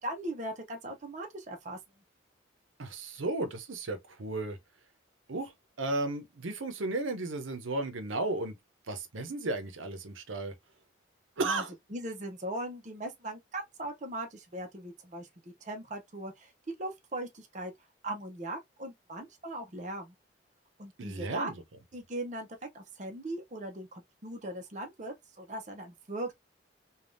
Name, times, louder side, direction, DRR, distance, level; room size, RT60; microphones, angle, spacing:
voice 1, 0.0-1.8 11.4-11.6 11.9-15.3 15.6-16.5 16.8-17.7 18.0-20.1 20.8-21.5 21.9-22.5 22.7-26.3, right 1 dB, 40° right, 0.6 m, -39 dB
voice 2, 2.8-4.6 5.3-5.5 5.8-8.5 8.9-10.5 11.4-11.7 21.0-21.5, right 2 dB, 85° right, 0.7 m, -34 dB
3.4 x 2.3 x 2.5 m
head